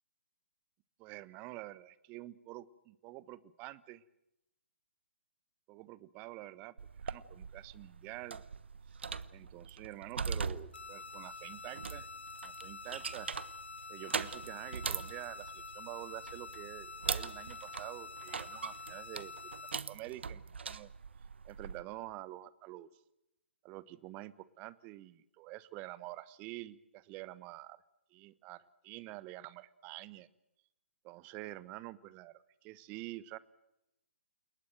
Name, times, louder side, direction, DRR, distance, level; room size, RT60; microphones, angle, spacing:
voice 1, 1.0-4.0 5.7-6.7 7.0-8.4 9.3-12.1 12.4-13.3 13.9-19.3 19.9-20.9 21.4-22.9 23.6-27.8 28.1-30.3 31.0-33.4, right 17 dB, 25° right, 18 dB, 1.1 m, -47 dB
sound 1, 6.8-21.8, right 5 dB, 65° right, 1.2 m, -42 dB
sound 2, 10.7-19.7, left 4 dB, 65° left, 1.3 m, -48 dB
29.5 x 18.5 x 7.8 m, 0.84 s
figure-of-eight pair, 130°, 6 cm